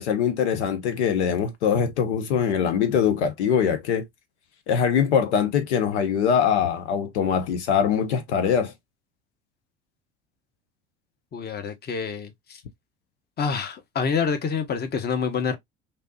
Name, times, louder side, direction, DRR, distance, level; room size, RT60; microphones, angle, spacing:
voice 1, 0.0-4.1 4.7-8.7, left 7 dB, 75° left, 0.7 m, -23 dB
voice 2, 11.3-12.6 13.4-15.6, left 6 dB, 30° left, 0.9 m, -27 dB
3.3 x 2.6 x 2.6 m
hypercardioid pair, 70°, 35 cm